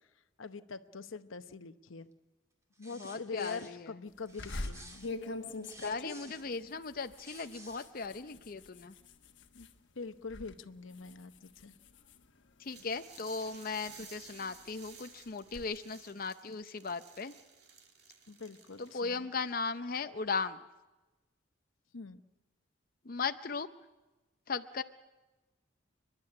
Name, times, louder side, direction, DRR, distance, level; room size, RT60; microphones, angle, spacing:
voice 1, 0.4-2.1 2.8-5.1 9.5-9.7 9.9-11.7 18.3-19.3 21.9-22.2, left 4 dB, 90° left, 11 dB, 0.9 m, -44 dB
sound 1, 2.7-3.7 4.3-6.5 7.0-7.9, right 1 dB, 15° right, 2.4 m, -53 dB
voice 2, 3.0-3.9 5.8-8.9 12.6-17.3 18.8-20.6 23.1-23.7 24.5-24.8, left 4 dB, 45° left, 9 dB, 0.6 m, -37 dB
sound 2, 4.4-9.8 10.1-10.5 10.9-12.9 13.5-15.7, left 2 dB, 65° left, 1.3 m, -44 dB
sound 3, 12.7-19.2, right 6 dB, 55° right, 2.5 m, -55 dB
30.0 x 11.5 x 9.9 m, 1.1 s
head